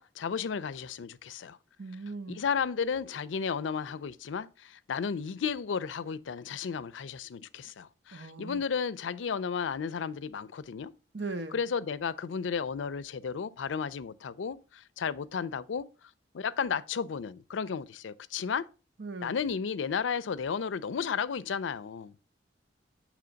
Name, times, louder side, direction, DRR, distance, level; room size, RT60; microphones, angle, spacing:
voice 1, 0.0-1.6 2.3-10.9 11.5-15.9 16.3-18.7 19.2-22.1, left 6 dB, 90° left, 0.4 m, -33 dB
voice 2, 1.8-2.4 8.1-8.6 11.1-11.5 19.0-19.3, right 3 dB, 65° right, 0.8 m, -38 dB
7.8 x 3.1 x 5.1 m
head